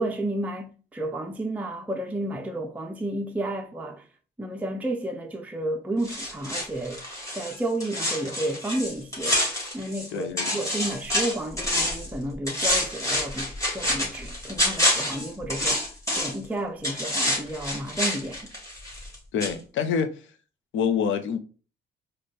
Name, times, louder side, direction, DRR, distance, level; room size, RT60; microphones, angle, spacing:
voice 1, 0.0-4.1 4.4-7.0 7.3-9.4 9.7-15.8 16.1-18.5, right 1 dB, 5° right, 0.4 m, -31 dB
sound 1, 6.0-10.1 10.4-12.1 12.5-16.5 16.8-19.2 19.4-19.5, left 1 dB, 15° left, 1.7 m, -27 dB
voice 2, 10.1-10.6 19.3-20.1 20.7-21.4, left 7 dB, 75° left, 0.5 m, -26 dB
4.0 x 2.2 x 3.2 m
cardioid pair, 90°, 20 cm